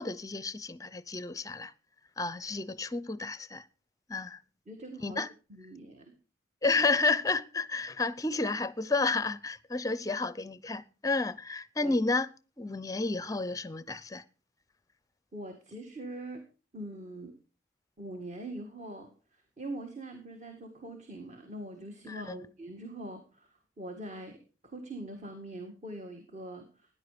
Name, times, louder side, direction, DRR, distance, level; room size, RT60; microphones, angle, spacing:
voice 1, 0.0-1.7 2.2-3.6 4.1-4.4 5.0-5.3 6.6-12.3 12.6-14.2 22.1-22.4, left 3 dB, 15° left, 0.6 m, -31 dB
voice 2, 4.7-5.2 5.5-6.1 11.8-12.0 15.3-16.5 16.7-17.3 18.0-26.9, right 1 dB, 35° right, 2.0 m, -43 dB
15.5 x 10.0 x 5.0 m
head